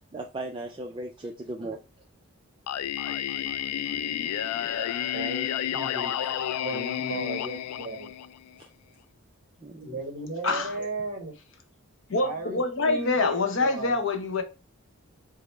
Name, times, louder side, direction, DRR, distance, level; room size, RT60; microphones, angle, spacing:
voice 1, 0.1-1.8 4.8-4.9 6.7-7.0 9.6-9.9, right 2 dB, 20° right, 0.3 m, -37 dB
Singing, 2.7-8.6, left 10 dB, 85° left, 0.3 m, -31 dB
voice 2, 5.1-6.1 6.6-8.1 9.8-11.4 12.2-12.6 12.8-14.0, right 2 dB, 40° right, 1.1 m, -35 dB
voice 3, 12.1-14.4, left 3 dB, 60° left, 0.7 m, -25 dB
5.1 x 2.0 x 4.3 m
head